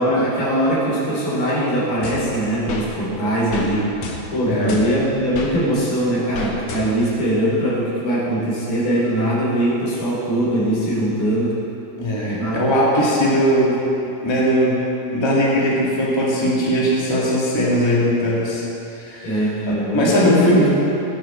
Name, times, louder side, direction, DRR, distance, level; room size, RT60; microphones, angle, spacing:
voice 1, 0.0-3.9 4.3-11.6 12.3-12.6 19.2-20.7, right 1 dB, 90° left, -6 dB, 4.8 m, -21 dB
sound 1, 2.0-2.9 3.5-3.7 4.0-5.5 6.3-7.2, left 5 dB, 70° left, 2.4 m, -32 dB
voice 2, 12.0-13.8 14.2-14.8 15.1-18.6 18.9-20.7, equal, 10° left, -5 dB, 1.4 m, -19 dB
15.0 x 9.8 x 4.5 m, 3.0 s
omnidirectional pair, 3.7 m